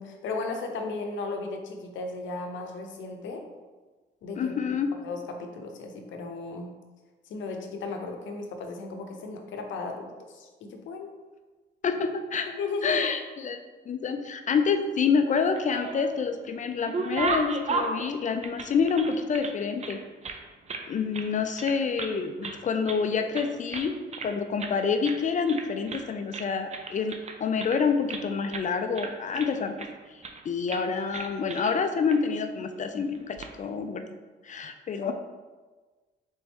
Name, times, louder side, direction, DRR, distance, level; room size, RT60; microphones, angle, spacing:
voice 1, 0.0-3.4 4.2-4.5 5.0-6.7 7.3-11.1 12.5-13.1 35.0-35.1, left 3 dB, 75° left, 4 dB, 0.7 m, -35 dB
voice 2, 4.4-4.9 11.8-12.5 12.8-13.6 13.9-20.0 20.9-29.7 30.1-34.0 34.4-35.1, left 5 dB, 40° left, 7 dB, 0.4 m, -27 dB
sound 1, 15.4-16.2 16.6-19.5 19.8-20.9 21.1-21.3 21.6-22.2 22.4-23.0 23.3-24.3 24.6-24.8 25.0-25.2 25.5-26.1 26.3-28.2 28.5-28.7 28.9-29.9 30.2-30.4 30.7-30.8 31.1-31.7 32.1-32.2 33.1-33.5, right 4 dB, 35° right, 0.5 m, -34 dB
4.0 x 3.5 x 3.5 m, 1.3 s
cardioid pair, 90°, 20 cm